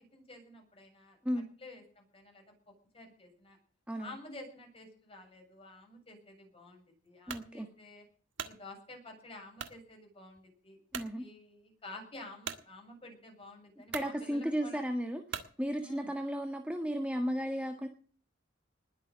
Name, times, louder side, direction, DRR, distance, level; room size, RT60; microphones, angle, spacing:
voice 1, 0.0-2.4 2.9-3.6 4.0-8.0 8.4-10.8 11.1-14.8 15.8-16.1, left 2 dB, 30° left, 2 dB, 7.5 m, -51 dB
voice 2, 7.3-7.7 10.9-11.2 13.9-17.9, equal, 5° right, 4 dB, 1.5 m, -34 dB
sound 1, 7.3-7.5 8.1-8.6 9.6-9.8 10.4-10.5 10.9-11.1 12.5-12.6 13.4-13.5 13.9-14.1 15.3-15.6, right 7 dB, 80° right, 1.9 m, -40 dB
20.5 x 7.4 x 8.0 m, 0.43 s
head